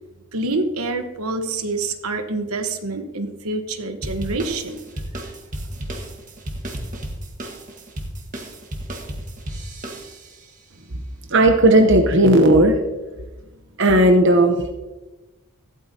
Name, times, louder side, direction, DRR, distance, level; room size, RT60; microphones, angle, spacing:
voice 1, 0.3-4.8, right 2 dB, 75° right, 7 dB, 1.2 m, -26 dB
sound 1, 4.0-10.5, right 1 dB, 35° right, 1.5 m, -33 dB
voice 2, 11.3-12.8 13.8-14.7, right 1 dB, 55° right, 4 dB, 0.9 m, -14 dB
15.0 x 12.0 x 2.8 m, 1.1 s
head